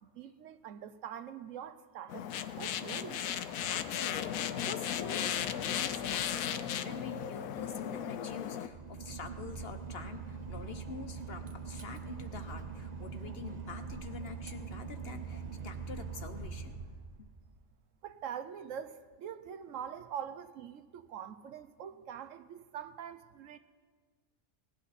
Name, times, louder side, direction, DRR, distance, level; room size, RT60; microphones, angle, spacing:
voice 1, 0.0-3.2 18.0-23.6, right 8 dB, 70° right, 1.0 m, -44 dB
sound 1, 2.1-8.7, left 9 dB, 85° left, 1.1 m, -35 dB
voice 2, 3.7-16.9, left 5 dB, 50° left, 0.9 m, -46 dB
Boat Water vehicle / Engine, 8.6-17.6, right 5 dB, 40° right, 0.7 m, -43 dB
18.0 x 11.5 x 4.1 m
omnidirectional pair, 1.4 m